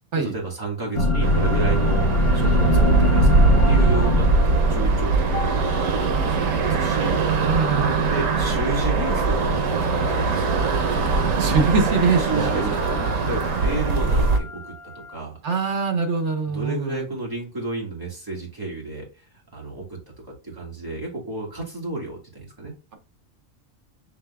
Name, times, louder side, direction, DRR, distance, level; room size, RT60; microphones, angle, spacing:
voice 1, 0.1-7.2 8.1-10.6 12.2-15.4 16.5-19.1 19.5-20.0 20.4-22.7, right 2 dB, 15° right, -3 dB, 1.7 m, -32 dB
sound 1, 0.9-6.4 7.6-8.6 9.0-9.1 11.6-11.7 12.1-15.2, left 2 dB, 30° left, 0.8 m, -25 dB
sound 2, 1.2-14.4, right 3 dB, 85° right, 1.1 m, -21 dB
voice 2, 7.4-8.1 11.4-13.0 15.4-17.1, right 4 dB, 65° right, 5 dB, 1.3 m, -24 dB
5.7 x 3.3 x 2.2 m, 0.30 s
omnidirectional pair, 1.3 m